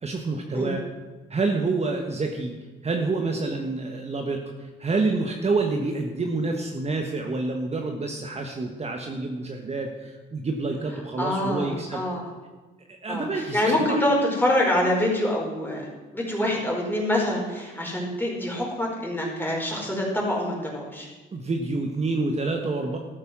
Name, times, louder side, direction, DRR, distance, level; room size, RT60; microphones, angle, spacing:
voice 1, 0.0-0.8 1.3-12.1 13.0-14.0 21.3-23.0, right 3 dB, 35° right, 3 dB, 1.4 m, -28 dB
voice 2, 11.2-12.2 13.1-15.8 16.1-21.1, left 1 dB, 10° left, -2 dB, 4.9 m, -25 dB
13.0 x 9.6 x 6.2 m, 1.2 s
cardioid pair, 90°, 20 cm